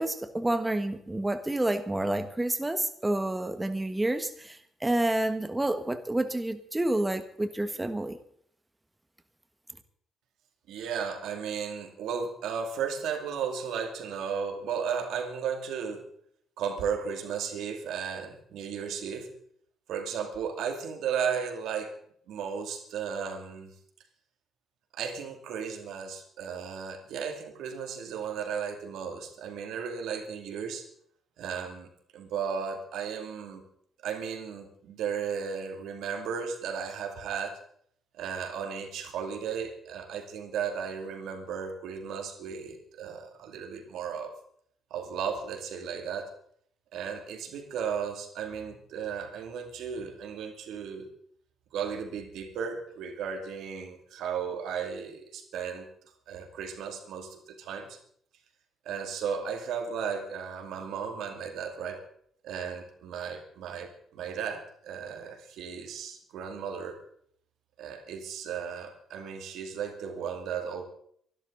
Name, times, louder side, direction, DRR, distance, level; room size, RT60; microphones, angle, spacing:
voice 1, 0.0-8.2, right 1 dB, 15° right, 8 dB, 1.4 m, -29 dB
voice 2, 10.7-16.0 16.6-19.3 19.9-21.9 22.3-23.7 24.9-30.9 31.4-33.6 34.0-37.6 38.2-44.4 44.9-46.3 46.9-51.1 51.7-55.9 56.3-58.0 58.8-62.0 62.4-67.0 67.8-70.8, right 7 dB, 80° right, 5 dB, 2.5 m, -35 dB
24.5 x 12.0 x 4.0 m, 0.65 s
cardioid pair, 90°, 0 cm